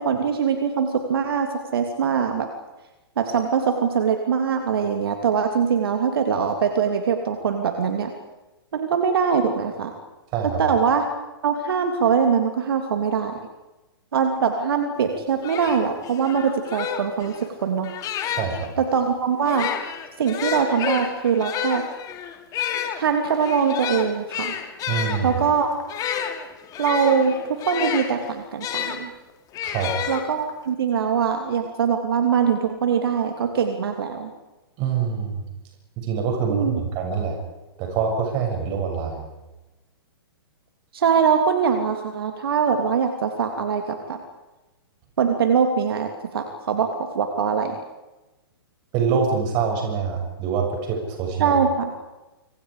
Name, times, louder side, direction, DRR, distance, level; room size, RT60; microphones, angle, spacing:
voice 1, 0.0-2.5 3.2-8.1 8.7-9.9 10.6-11.0 11.4-13.4 14.1-17.9 18.8-19.7 20.2-21.8 23.0-24.6 25.2-25.7 26.8-29.1 30.1-34.3 36.5-36.8 40.9-44.2 45.2-47.8 51.4-51.9, right 6 dB, 65° right, 5 dB, 2.9 m, -22 dB
voice 2, 10.3-10.6 18.4-18.7 24.9-25.4 29.6-30.0 34.8-35.4 36.0-37.4 37.8-39.2 48.9-51.6, right 6 dB, 35° right, 2 dB, 7.4 m, -25 dB
sound 1, 15.0-15.1 15.4-18.7 19.4-29.0 29.5-30.6, left 9 dB, 25° left, 2.9 m, -30 dB
27.0 x 25.5 x 5.1 m, 1.1 s
hypercardioid pair, 120°, 13 cm